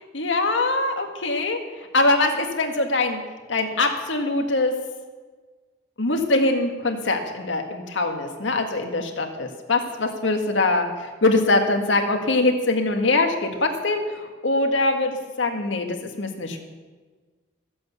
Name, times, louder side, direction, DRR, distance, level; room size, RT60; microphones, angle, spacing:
voice 1, 0.1-1.6 1.9-3.2 3.5-4.7 6.0-10.9 11.2-14.0 14.4-15.1 15.4-16.6, left 2 dB, 75° left, 4 dB, 1.8 m, -22 dB
14.5 x 8.0 x 8.2 m, 1.4 s
head